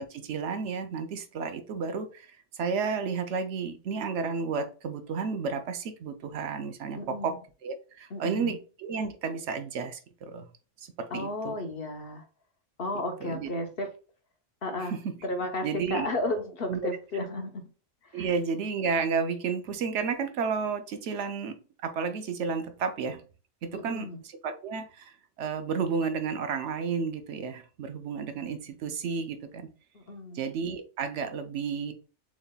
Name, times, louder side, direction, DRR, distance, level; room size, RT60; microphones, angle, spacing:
voice 1, 0.0-7.4 7.6-10.5 11.0-11.6 13.2-13.5 14.8-15.1 15.6-16.1 16.7-16.8 18.1-21.6 21.8-23.2 23.6-25.1 25.4-29.7 30.3-31.9, right 5 dB, 70° right, 0.9 m, -32 dB
voice 2, 7.0-7.4 8.1-8.5 11.1-12.2 12.8-13.9 14.6-15.0 15.2-17.7 18.1-18.3 23.7-24.2 29.9-30.4, left 2 dB, 55° left, 1.0 m, -33 dB
6.7 x 3.1 x 2.2 m
omnidirectional pair, 1.3 m